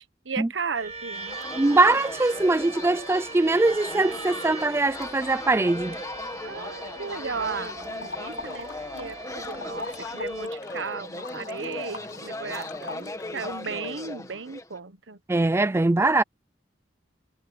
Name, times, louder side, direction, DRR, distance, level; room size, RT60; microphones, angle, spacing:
voice 1, 0.0-1.4 6.4-15.2, right 5 dB, 70° right, 1.2 m, -35 dB
sound 1, 0.7-10.5, right 3 dB, 35° right, 1.8 m, -40 dB
sound 2, 1.1-14.8, left 2 dB, 20° left, 2.0 m, -38 dB
voice 2, 1.6-6.0 15.3-16.2, right 2 dB, 15° right, 0.4 m, -22 dB
sound 3, 7.7-9.2 9.4-13.9, left 3 dB, 70° left, 6.4 m, -41 dB
head